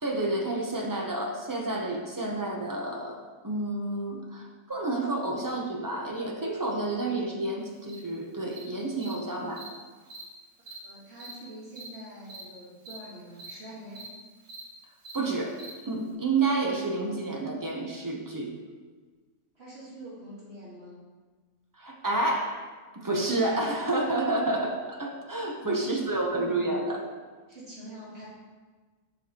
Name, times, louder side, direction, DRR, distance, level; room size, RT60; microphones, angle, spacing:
voice 1, 0.0-3.2 3.4-9.7 15.1-15.6 15.8-18.5 21.8-27.1, right 2 dB, 25° right, 0 dB, 0.4 m, -30 dB
Cricket, 7.9-8.0 8.5-8.6 9.0-9.1 9.6-9.7 10.1-10.2 10.7-10.8 11.2-11.3 11.8-11.9 12.2-12.4 12.9-13.0 13.3-13.5 13.9-14.1 14.4-14.6 15.0-15.2 15.6-15.7, right 4 dB, 70° right, 1.4 m, -43 dB
voice 2, 10.8-14.1 19.5-21.0 25.6-26.0 27.5-28.3, right 1 dB, 50° right, -8 dB, 1.7 m, -45 dB
7.0 x 5.9 x 2.8 m, 1.4 s
omnidirectional pair, 1.4 m